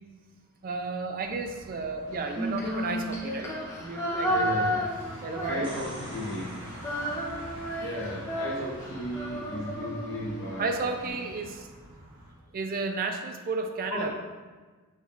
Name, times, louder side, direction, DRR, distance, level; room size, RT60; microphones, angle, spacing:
voice 1, 0.6-4.5 5.2-5.7 10.6-11.7 12.5-14.2, right 3 dB, 40° right, 5 dB, 0.4 m, -33 dB
sound 1, 1.2-12.3, equal, 80° right, 1.4 m, -46 dB
Female singing, 2.2-6.1 6.4-10.7, equal, 15° left, 0.7 m, -32 dB
voice 2, 4.3-6.7 7.8-10.7 11.1-11.2 13.9-14.1, left 1 dB, 55° left, -2 dB, 0.9 m, -35 dB
sound 2, 5.4-7.4 11.1-11.2, right 1 dB, 25° right, 0.8 m, -45 dB
6.3 x 2.4 x 3.5 m, 1.3 s
head